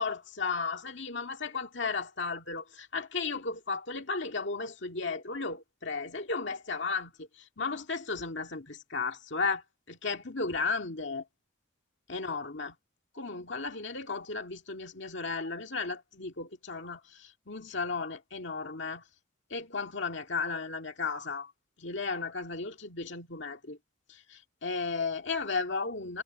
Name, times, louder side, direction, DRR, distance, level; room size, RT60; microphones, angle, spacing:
voice 1, 0.0-7.3 7.6-9.6 9.9-11.2 12.1-12.7 13.2-19.0 19.5-21.5 21.8-23.8 24.1-26.2, left 4 dB, 55° left, 2.1 m, -34 dB
head